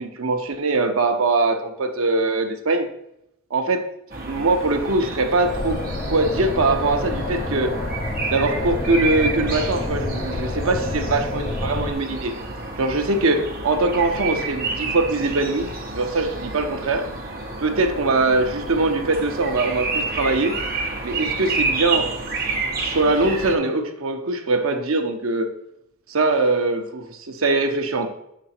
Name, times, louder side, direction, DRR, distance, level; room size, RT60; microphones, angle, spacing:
voice 1, 0.0-2.9 3.5-3.9 4.3-5.8 6.1-7.8 8.3-12.3 12.8-17.1 17.6-20.6 21.0-22.1 22.8-25.5 26.1-28.1, right 2 dB, 75° right, 5 dB, 0.8 m, -22 dB
sound 1, 4.1-23.5, right 3 dB, 45° right, 1.1 m, -30 dB
sound 2, 5.4-11.9, left 2 dB, 25° left, 0.3 m, -29 dB
5.8 x 5.1 x 4.4 m, 0.79 s
head